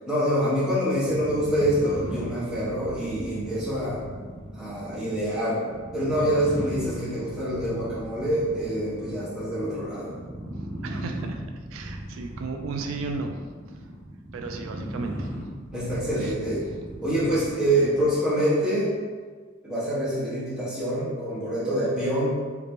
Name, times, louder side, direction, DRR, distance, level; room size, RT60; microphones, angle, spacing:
voice 1, 0.1-4.0 4.6-5.6 5.9-10.2 15.7-16.6 17.0-18.9 19.6-22.3, equal, 5° right, -11 dB, 1.1 m, -26 dB
sound 1, 1.0-18.3, right 1 dB, 60° right, 0.7 m, -37 dB
voice 2, 10.8-11.4 11.7-13.3 14.3-15.3 16.2-16.3, right 4 dB, 90° right, 5 dB, 0.3 m, -34 dB
2.9 x 2.8 x 3.5 m, 1.5 s
head